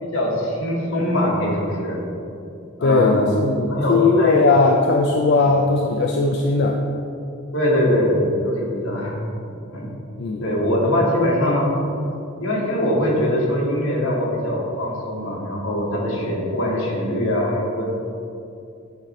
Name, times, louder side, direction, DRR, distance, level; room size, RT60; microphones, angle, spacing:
voice 1, 0.0-2.0 2.8-4.5 5.4-5.5 7.5-9.2 9.7-9.9 10.4-11.7 12.4-17.9, left 1 dB, 75° left, -3 dB, 1.3 m, -22 dB
voice 2, 2.8-6.8 10.2-10.5, left 3 dB, 50° left, 1 dB, 0.4 m, -18 dB
8.8 x 3.1 x 4.2 m, 2.6 s
head